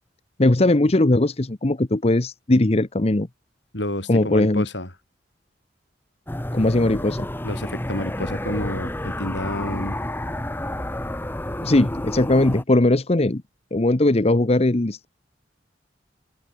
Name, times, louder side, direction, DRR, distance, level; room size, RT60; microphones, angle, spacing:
voice 1, 0.4-3.3 4.1-4.6 6.5-7.3 11.6-13.4 13.7-15.1, left 2 dB, 35° left, 0.9 m, -19 dB
voice 2, 3.7-4.9 7.4-10.0, left 1 dB, 80° left, 5.7 m, -29 dB
sound 1, 6.3-12.6, left 1 dB, 10° left, 1.2 m, -30 dB
head